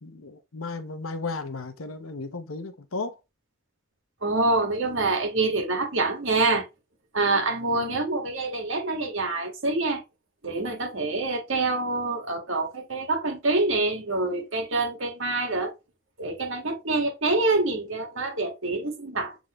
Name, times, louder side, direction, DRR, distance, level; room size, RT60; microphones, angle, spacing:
voice 1, 0.0-3.2 7.7-8.0, left 3 dB, 80° left, 1.0 m, -35 dB
voice 2, 4.2-6.7 7.1-10.0 10.4-15.7 16.2-19.4, right 3 dB, 65° right, 1.9 m, -26 dB
8.2 x 3.8 x 3.1 m
head